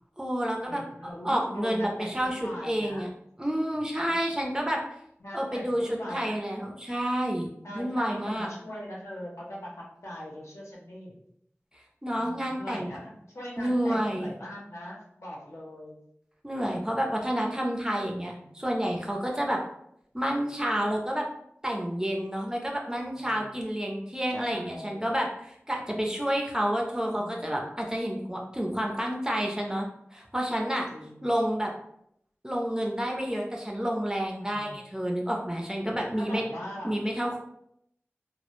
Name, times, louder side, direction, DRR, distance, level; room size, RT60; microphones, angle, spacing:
voice 1, 0.2-3.1 3.4-4.8 5.3-7.5 7.7-8.5 12.0-13.0 13.6-14.4 16.4-19.6 20.1-21.2 21.6-29.9 30.1-30.9 31.2-31.7 32.4-36.4 36.8-37.4, equal, 15° right, -1 dB, 0.4 m, -29 dB
voice 2, 0.7-3.1 4.0-4.2 5.2-6.6 7.6-11.2 12.2-15.9 18.3-18.6 23.1-23.5 24.5-25.1 27.1-27.6 30.9-31.3 34.4-34.9 35.9-37.0, equal, 75° left, -4 dB, 0.6 m, -41 dB
2.0 x 2.0 x 2.9 m, 0.74 s
wide cardioid pair, 40°, 5 cm